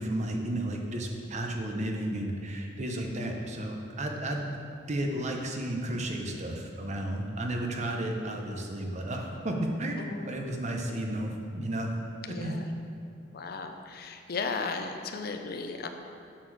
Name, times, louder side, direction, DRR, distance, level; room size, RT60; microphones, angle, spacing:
voice 1, 0.0-4.6 4.9-10.0 10.3-11.9 12.3-12.5, right 1 dB, 40° right, 2 dB, 0.8 m, -33 dB
voice 2, 10.0-10.3 12.3-12.7 13.3-15.9, left 4 dB, 55° left, 6 dB, 0.5 m, -35 dB
7.7 x 4.3 x 6.1 m, 2.5 s
head